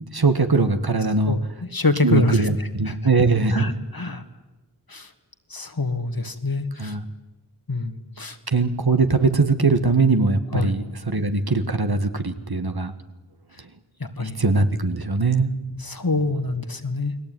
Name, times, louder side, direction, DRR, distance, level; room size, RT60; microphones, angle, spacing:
voice 1, 0.0-1.4 2.0-3.7 6.8-7.0 8.5-12.9 14.2-15.5, right 3 dB, 60° right, 9 dB, 1.9 m, -21 dB
voice 2, 1.3-3.0 3.5-4.2 4.9-5.1 5.5-7.0 7.7-8.4 10.5-10.7 14.0-14.4 15.8-17.2, left 3 dB, 55° left, 8 dB, 2.2 m, -26 dB
29.5 x 20.5 x 9.4 m, 1.1 s
wide cardioid pair, 50°, 42 cm